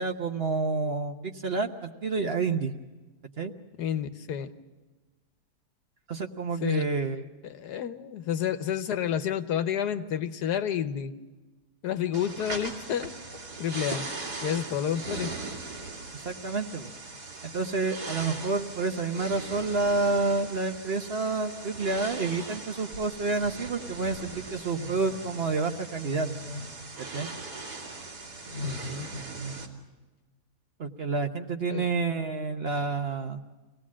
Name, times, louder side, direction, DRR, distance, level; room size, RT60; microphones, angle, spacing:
voice 1, 0.0-2.7 3.4-3.5 6.1-7.2 16.1-16.9 17.4-26.3 27.1-27.3 30.8-33.4, right 3 dB, 45° right, 6 dB, 1.0 m, -29 dB
voice 2, 3.8-4.5 6.6-6.9 7.4-11.1 11.8-13.1 13.6-14.1 14.4-15.3 28.6-29.1 31.7-31.9, left 9 dB, 85° left, 10 dB, 1.5 m, -30 dB
sound 1, 12.1-29.7, right 3 dB, 90° right, 2.9 m, -39 dB
24.5 x 18.0 x 7.4 m, 1.2 s
omnidirectional pair, 1.7 m